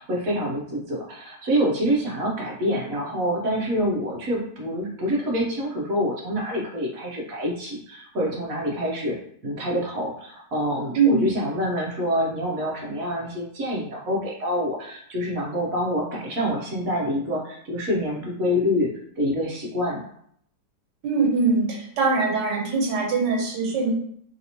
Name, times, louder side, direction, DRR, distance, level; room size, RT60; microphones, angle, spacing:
voice 1, 0.0-9.1 9.4-18.9 19.2-20.0, equal, 60° right, -2 dB, 1.1 m, -26 dB
voice 2, 10.9-11.3 21.0-23.9, right 4 dB, 90° right, -1 dB, 1.4 m, -22 dB
3.2 x 2.8 x 2.8 m, 0.66 s
omnidirectional pair, 1.8 m